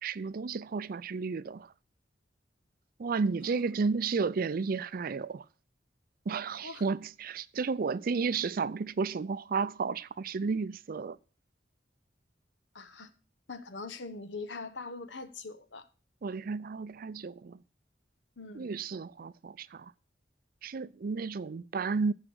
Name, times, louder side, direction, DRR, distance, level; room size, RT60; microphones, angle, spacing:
voice 1, 0.0-1.7 3.0-5.4 6.3-11.2 16.2-17.6 18.5-19.9 20.6-22.1, right 4 dB, 55° right, 0.4 m, -32 dB
voice 2, 12.7-13.1 13.5-15.9 18.4-18.7, left 3 dB, 85° left, 1.1 m, -42 dB
15.0 x 5.0 x 6.2 m
head